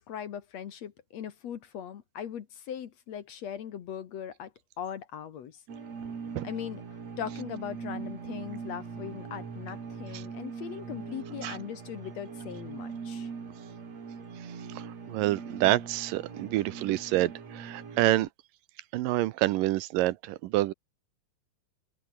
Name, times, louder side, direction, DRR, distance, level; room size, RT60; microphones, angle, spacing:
voice 1, 0.0-4.5 4.8-5.6 6.4-6.8 7.2-13.3, left 9 dB, 55° left, 2.3 m, -39 dB
sound 1, 5.7-18.3, right 5 dB, 50° right, 4.5 m, -41 dB
voice 2, 14.8-18.3 18.9-20.7, right 16 dB, 80° right, 2.4 m, -27 dB
omnidirectional pair, 4.1 m